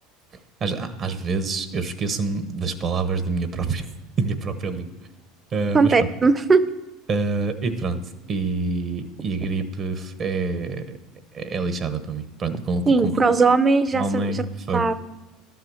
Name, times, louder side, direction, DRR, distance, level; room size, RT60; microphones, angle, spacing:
voice 1, 0.6-3.9 4.2-4.9 5.5-5.9 7.1-8.0 8.3-10.8 11.3-12.8 13.9-15.0, right 4 dB, 40° right, 10 dB, 1.0 m, -26 dB
voice 2, 5.7-6.6 12.9-14.5 14.7-15.0, right 4 dB, 25° right, 14 dB, 0.7 m, -18 dB
11.5 x 5.8 x 6.4 m, 1.1 s
hypercardioid pair, 90°, 0 cm